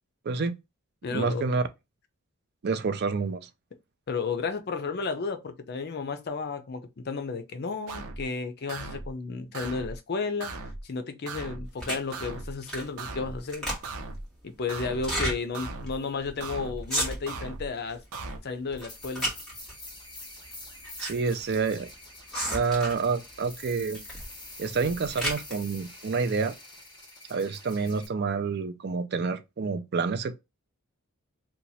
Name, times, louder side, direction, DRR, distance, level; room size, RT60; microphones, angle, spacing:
voice 1, 0.2-0.6 1.1-1.7 2.6-3.5 21.0-21.9 22.5-24.0 24.6-26.6 27.3-30.4, right 4 dB, 50° right, 0.4 m, -28 dB
voice 2, 1.0-1.4 4.1-10.5 10.8-13.8 14.4-18.0 18.4-19.3, left 4 dB, 50° left, 0.5 m, -33 dB
sound 1, 7.9-8.3 8.7-9.1 9.5-10.0 10.4-10.8 11.3-11.7 12.1-12.5 13.0-13.4 13.8-14.3 14.7-15.1 15.5-16.0 16.4-16.8 17.3-17.7 18.1-18.4, right 3 dB, 85° right, 0.7 m, -38 dB
sound 2, 11.8-12.1 12.6-13.0 13.3-14.1 14.9-15.4 15.9-16.0 16.2-16.4 16.8-17.4 17.9-18.3 18.7-19.7 20.5-21.1 21.4-21.5 22.3-23.1 23.9-24.3 24.7-25.6, right 1 dB, 5° left, 1.5 m, -32 dB
sound 3, 18.9-28.1, left 1 dB, 20° left, 1.3 m, -46 dB
2.9 x 2.3 x 4.0 m
head